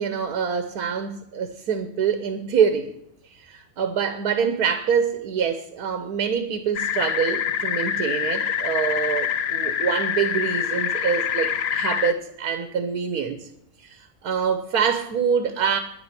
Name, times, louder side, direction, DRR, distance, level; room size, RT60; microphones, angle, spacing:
voice 1, 0.0-2.9 3.3-13.5 13.8-15.8, right 7 dB, 85° right, 1.5 m, -25 dB
sound 1, 6.7-12.1, left 9 dB, 55° left, 0.8 m, -25 dB
11.0 x 8.8 x 9.9 m
omnidirectional pair, 1.6 m